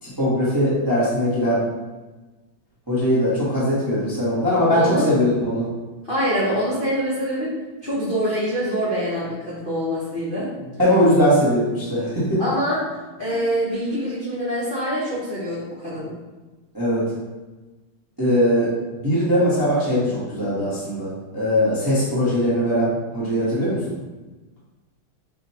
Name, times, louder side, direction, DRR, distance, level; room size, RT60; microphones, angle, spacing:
voice 1, 0.0-1.6 2.9-5.7 10.8-12.4 16.7-17.0 18.2-18.7 19.0-23.9, equal, 20° right, -9 dB, 0.6 m, -20 dB
voice 2, 4.7-5.1 6.1-7.5 7.8-10.5 12.4-16.1, equal, 50° left, -9 dB, 0.6 m, -25 dB
6.1 x 2.2 x 2.8 m, 1.2 s
omnidirectional pair, 2.3 m